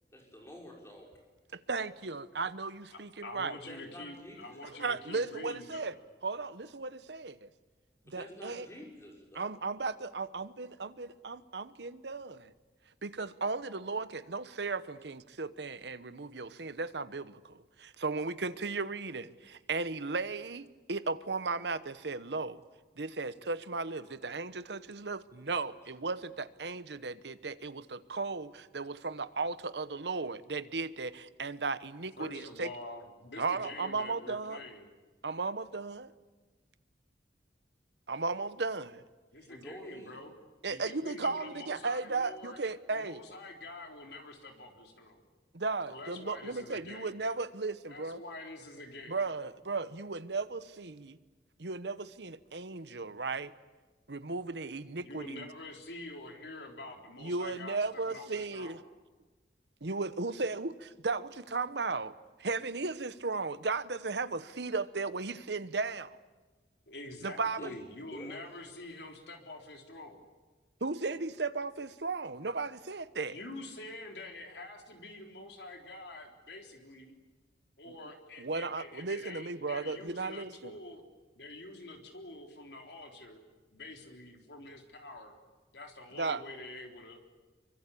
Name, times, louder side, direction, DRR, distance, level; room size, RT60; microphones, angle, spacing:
voice 1, 0.1-1.1 3.7-4.6 8.1-9.5 39.5-40.1 67.6-67.7 68.1-68.4, equal, 15° left, -1 dB, 5.9 m, -48 dB
voice 2, 1.5-3.6 4.8-6.0 6.2-7.5 8.1-8.7 9.3-12.5 13.0-22.6 23.0-32.7 33.4-34.6 35.2-36.1 38.1-39.0 40.6-43.2 45.5-48.2 49.1-51.2 51.6-53.5 54.1-55.5 57.2-58.8 59.8-62.1 62.4-66.2 67.2-67.7 70.8-73.4 77.8-77.9 78.4-80.8 86.2-86.4, right 3 dB, 75° right, 14 dB, 1.0 m, -36 dB
voice 3, 3.2-5.9 32.2-34.9 39.3-40.3 40.7-42.6 42.9-45.2 45.9-47.1 47.9-49.2 54.9-58.8 66.9-70.2 73.3-77.1 77.8-81.0 81.4-83.4 83.7-85.3 85.7-87.2, left 2 dB, 75° left, 3 dB, 3.9 m, -46 dB
26.0 x 24.0 x 8.5 m, 1.3 s
head